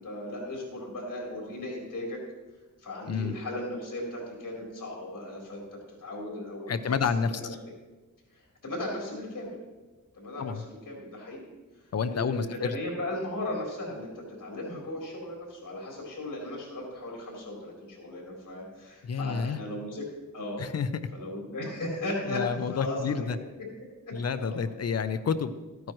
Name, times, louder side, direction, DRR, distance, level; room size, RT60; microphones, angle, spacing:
voice 1, 0.0-2.2 2.8-5.6 6.0-7.0 7.3-7.5 8.3-9.6 10.1-11.5 11.8-20.0 20.3-20.7 21.1-23.3 24.0-24.6, left 1 dB, 80° left, -2 dB, 3.9 m, -37 dB
voice 2, 6.7-7.6 10.4-10.6 11.9-12.7 19.0-19.6 20.6-20.9 22.3-23.4 24.1-25.5, left 6 dB, 55° left, 11 dB, 0.6 m, -29 dB
14.5 x 9.3 x 3.1 m, 1.2 s
wide cardioid pair, 105°, 31 cm